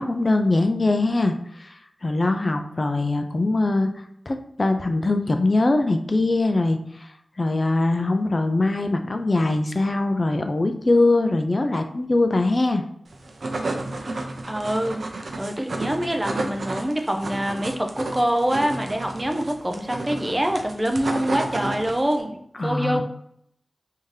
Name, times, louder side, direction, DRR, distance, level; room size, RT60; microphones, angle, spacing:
voice 1, 0.0-3.9 4.3-7.1 7.4-12.8 22.6-23.0, left 2 dB, 40° left, 6 dB, 0.4 m, -22 dB
sound 1, 13.1-22.2, right 2 dB, 75° right, 0.5 m, -32 dB
voice 2, 14.1-15.0 15.4-23.0, right 1 dB, 20° right, 4 dB, 0.5 m, -25 dB
3.6 x 2.7 x 3.2 m, 0.71 s
wide cardioid pair, 90°, 0 cm